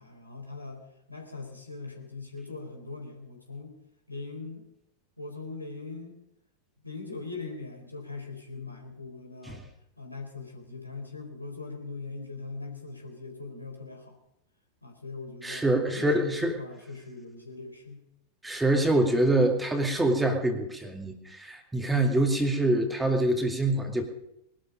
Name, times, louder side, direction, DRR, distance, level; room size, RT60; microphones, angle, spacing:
voice 1, 0.0-3.7 4.1-4.7 5.2-6.1 6.8-9.6 10.0-14.2 14.8-18.0, left 3 dB, 85° left, 2 dB, 4.0 m, -41 dB
voice 2, 15.4-16.6 18.4-24.1, right 1 dB, 10° right, 4 dB, 2.2 m, -25 dB
21.0 x 12.5 x 5.2 m, 0.81 s
figure-of-eight pair, 90°, 0 cm